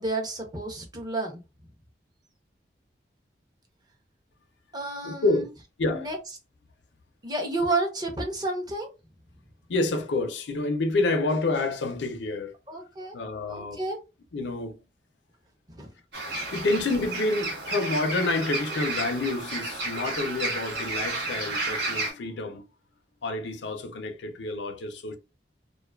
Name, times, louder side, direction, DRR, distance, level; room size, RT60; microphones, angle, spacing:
voice 1, 0.0-1.4 4.7-5.4 5.9-6.2 7.2-8.9 12.7-13.2 13.5-14.0 15.8-15.9, right 2 dB, 25° right, 0.6 m, -30 dB
voice 2, 5.0-5.5 5.8-6.1 9.7-12.5 13.1-13.8 14.3-14.8 16.5-22.6 23.2-25.2, left 2 dB, 85° left, 0.5 m, -28 dB
sound 1, 16.1-22.1, right 2 dB, 80° right, 0.9 m, -32 dB
2.4 x 2.2 x 2.2 m
head